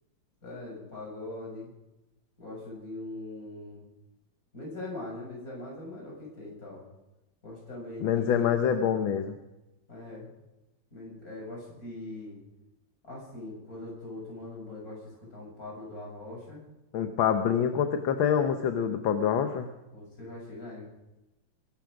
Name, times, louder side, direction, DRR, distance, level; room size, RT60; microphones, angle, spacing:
voice 1, 0.4-1.7 2.4-3.9 4.5-6.8 7.4-8.5 9.9-10.3 10.9-12.4 13.0-16.6 19.9-20.9, left 2 dB, 45° left, -3 dB, 7.6 m, -41 dB
voice 2, 8.0-9.3 16.9-19.7, left 8 dB, 75° left, 7 dB, 1.7 m, -26 dB
22.0 x 12.0 x 5.1 m, 0.97 s
omnidirectional pair, 2.2 m